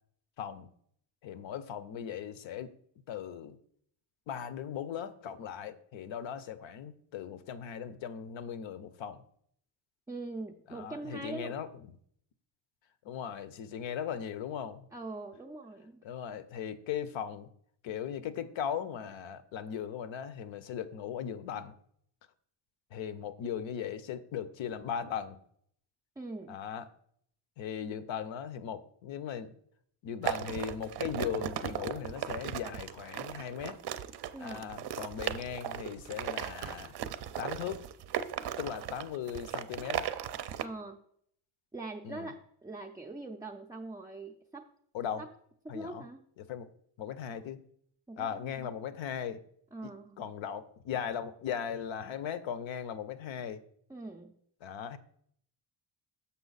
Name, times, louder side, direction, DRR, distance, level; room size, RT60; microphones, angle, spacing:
voice 1, 0.4-0.7 1.2-2.7 3.1-3.6 4.3-9.2 10.7-11.7 13.0-14.9 16.0-17.5 17.8-21.7 22.9-25.4 26.5-26.9 27.6-29.5 30.0-33.8 34.4-36.9 37.4-37.8 38.6-40.1 42.0-42.3 44.9-45.2 45.7-46.1 46.4-46.7 47.0-47.6 48.2-49.4 49.8-49.9 50.2-53.6 54.6-55.0, left 8 dB, 70° left, 14 dB, 0.7 m, -38 dB
voice 2, 10.1-11.6 14.9-16.0 26.2-26.6 34.3-34.7 40.6-41.0 41.7-44.7 45.2-45.3 45.6-46.2 48.1-48.7 49.7-50.2 53.9-54.3, right 2 dB, 10° right, 1 dB, 0.4 m, -42 dB
sound 1, 30.2-40.6, right 10 dB, 55° right, 0.5 m, -37 dB
7.0 x 5.7 x 4.0 m, 0.66 s
cardioid pair, 125°, 48 cm